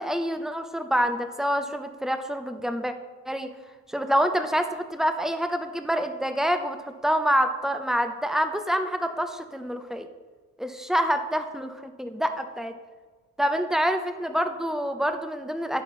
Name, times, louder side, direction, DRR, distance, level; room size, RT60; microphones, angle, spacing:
voice 1, 0.0-2.9 3.3-3.5 3.9-10.1 10.6-12.7 13.4-15.8, equal, ahead, 8 dB, 0.6 m, -27 dB
11.0 x 4.4 x 4.3 m, 1.4 s
cardioid pair, 90°, 30 cm